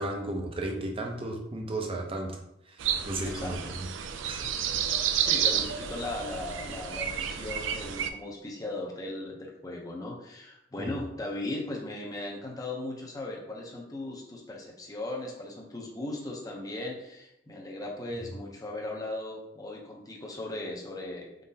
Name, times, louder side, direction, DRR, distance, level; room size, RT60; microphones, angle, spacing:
voice 1, 0.0-2.3 2.7-3.9 4.2-4.4 10.8-10.9 18.1-18.2, right 2 dB, 30° right, 1 dB, 0.6 m, -34 dB
sound 1, 2.8-8.1, right 8 dB, 85° right, 0.4 m, -30 dB
voice 2, 3.2-3.6 5.2-21.4, left 2 dB, 20° left, -1 dB, 0.7 m, -37 dB
4.2 x 3.8 x 2.8 m, 0.83 s
head